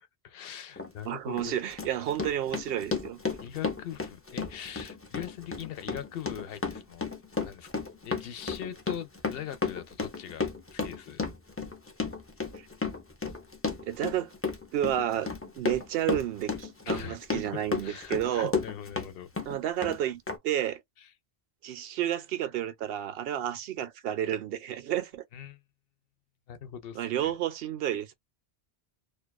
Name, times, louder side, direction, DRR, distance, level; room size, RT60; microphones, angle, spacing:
voice 1, 0.0-1.6 3.4-7.0 7.4-11.2 16.9-17.2 17.5-19.3 21.0-21.1 25.3-25.6 26.5-27.3, left 10 dB, 70° left, 0.7 m, -41 dB
Run, 0.8-0.9 1.4-19.1 19.4-20.0 20.3-20.4, left 4 dB, 20° left, 0.4 m, -33 dB
voice 2, 1.0-3.2 12.5-12.7 13.8-14.3 14.7-15.3 15.6-18.5 19.5-20.8 21.6-25.3 27.0-28.1, right 11 dB, 70° right, 0.7 m, -31 dB
2.4 x 2.3 x 2.2 m
omnidirectional pair, 1.1 m